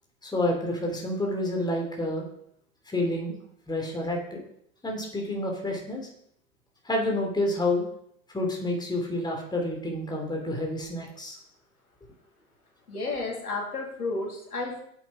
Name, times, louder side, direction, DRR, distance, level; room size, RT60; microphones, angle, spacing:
voice 1, 0.2-2.2 2.9-3.4 3.7-4.4 4.8-6.0 6.8-7.8 8.3-11.4, left 1 dB, 10° left, 0 dB, 3.2 m, -29 dB
voice 2, 12.9-14.8, left 3 dB, 85° left, -1 dB, 3.1 m, -32 dB
8.5 x 8.3 x 5.0 m, 0.68 s
figure-of-eight pair, 90°, 43 cm